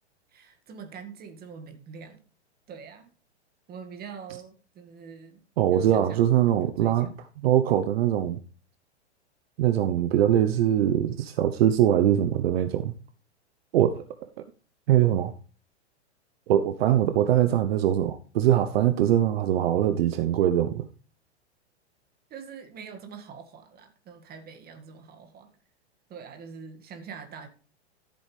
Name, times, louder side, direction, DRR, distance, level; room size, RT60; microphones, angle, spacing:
voice 1, 0.3-2.2 2.7-3.1 3.7-5.4 5.7-7.1 22.3-25.5 26.1-27.5, right 6 dB, 25° right, 2.1 m, -44 dB
voice 2, 5.6-7.1 7.4-8.4 9.6-12.9 13.7-14.0 14.9-15.3 16.5-20.8, right 11 dB, 60° right, 1.0 m, -22 dB
13.5 x 8.1 x 3.4 m
hypercardioid pair, 110°, 34 cm